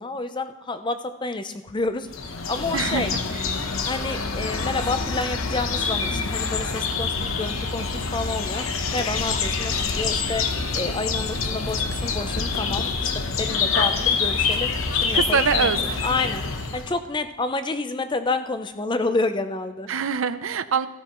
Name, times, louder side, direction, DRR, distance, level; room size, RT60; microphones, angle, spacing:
voice 1, 0.0-3.1 3.8-8.6 8.9-10.5 10.7-13.1 13.4-15.7 16.0-16.4 16.7-19.9, left 3 dB, 25° left, 9 dB, 0.6 m, -29 dB
sound 1, 2.1-17.0, left 5 dB, 85° left, 0.9 m, -26 dB
voice 2, 2.7-3.1 15.1-15.8 19.9-20.9, right 6 dB, 80° right, 13 dB, 0.6 m, -23 dB
sound 2, 3.4-16.2, left 2 dB, 60° left, 3.3 m, -44 dB
16.0 x 13.0 x 3.1 m, 1.1 s
head